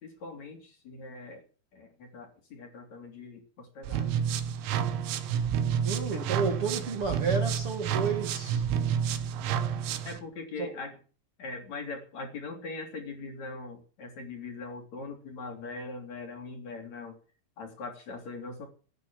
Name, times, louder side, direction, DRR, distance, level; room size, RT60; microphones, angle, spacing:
voice 1, 0.0-1.4 1.7-4.2 10.0-10.9 11.4-17.2 17.6-18.7, left 3 dB, 40° left, 4.0 m, -41 dB
sound 1, 3.8-10.2, right 8 dB, 85° right, 4.0 m, -29 dB
voice 2, 5.8-8.7 10.6-10.7, right 4 dB, 55° right, 1.6 m, -31 dB
17.0 x 9.6 x 7.5 m
omnidirectional pair, 5.9 m